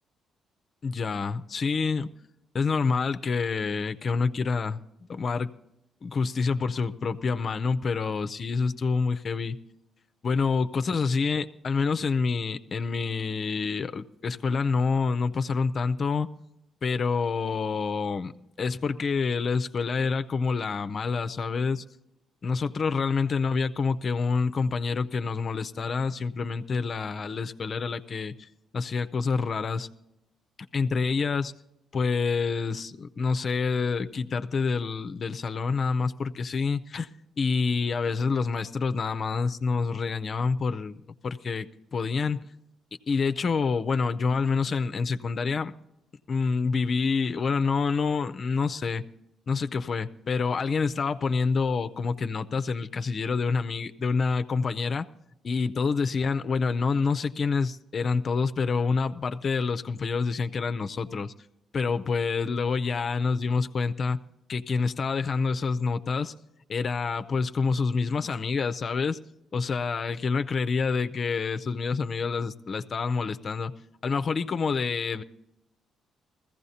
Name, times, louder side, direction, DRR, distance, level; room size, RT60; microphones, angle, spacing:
voice 1, 0.8-2.1 2.5-4.8 5.1-5.5 6.0-9.6 10.2-16.3 16.8-18.3 18.6-21.8 22.4-28.5 28.7-29.9 30.7-31.5 31.9-37.1 37.4-42.4 43.1-45.7 46.3-49.0 49.5-55.1 55.4-61.3 61.7-64.2 64.5-66.3 66.7-69.2 69.5-73.7 74.0-75.2, left 4 dB, 45° left, 10 dB, 0.5 m, -27 dB
20.0 x 15.0 x 2.8 m, 0.90 s
cardioid pair, 90°, 0 cm